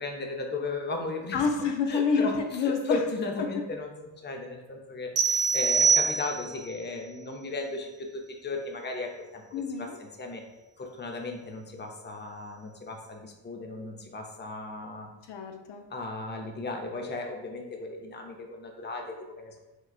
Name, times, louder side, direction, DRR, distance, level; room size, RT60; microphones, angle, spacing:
voice 1, 0.0-1.4 1.9-2.4 2.6-10.4 10.8-15.1 15.9-19.6, left 3 dB, 25° left, 2 dB, 0.6 m, -36 dB
voice 2, 1.3-3.0 3.4-3.5 9.5-10.0 15.3-15.8, left 5 dB, 70° left, 4 dB, 0.5 m, -28 dB
sound 1, 5.2-6.7, right 5 dB, 35° right, 0.5 m, -24 dB
4.5 x 2.3 x 2.3 m, 1.0 s
cardioid pair, 65°, 44 cm